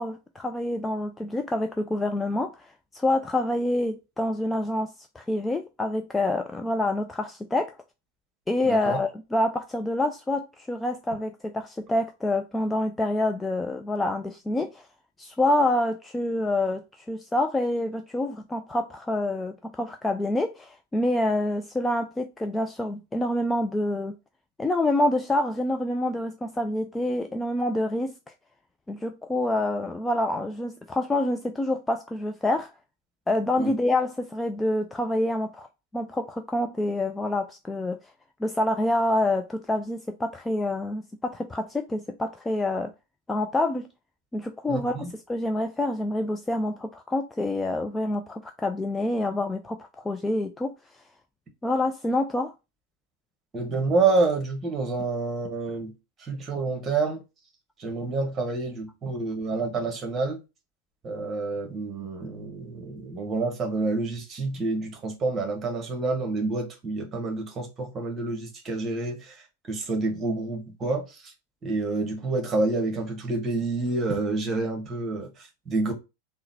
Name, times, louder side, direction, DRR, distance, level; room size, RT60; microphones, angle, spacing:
voice 1, 0.0-2.7 2.9-7.7 8.5-14.8 15.2-24.1 24.6-28.2 28.9-32.7 33.3-35.7 35.9-38.0 38.4-42.9 43.3-43.9 44.3-50.7 51.6-52.5, left 1 dB, 10° left, 0.3 m, -27 dB
voice 2, 8.6-9.0 33.6-33.7 44.7-45.1 53.5-55.9 56.2-57.2 57.8-60.4 61.0-69.3 69.7-71.3 71.6-75.9, right 3 dB, 25° right, 1.3 m, -28 dB
3.7 x 2.1 x 4.1 m
figure-of-eight pair, 90°, 0 cm